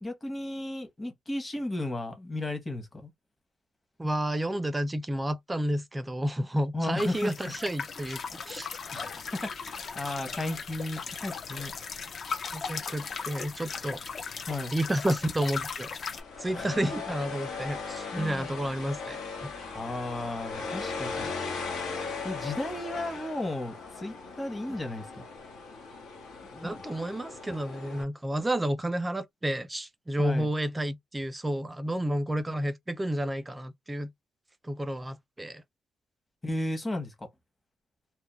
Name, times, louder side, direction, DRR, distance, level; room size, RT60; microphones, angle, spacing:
voice 1, 0.0-3.1 6.7-7.3 8.9-11.7 14.5-14.7 16.5-16.9 18.1-18.5 19.7-21.3 22.2-25.2 26.5-26.8 30.2-30.5 36.4-37.3, left 1 dB, 15° left, 0.9 m, -34 dB
voice 2, 4.0-8.7 12.5-14.0 14.7-15.9 16.4-19.2 19.4-19.5 26.6-34.1 34.6-35.6, right 1 dB, 15° right, 0.3 m, -31 dB
sound 1, 7.0-16.2, left 5 dB, 50° left, 0.5 m, -37 dB
sound 2, 16.1-28.0, left 4 dB, 85° left, 1.0 m, -38 dB
2.2 x 2.0 x 2.9 m
cardioid pair, 90°, 0 cm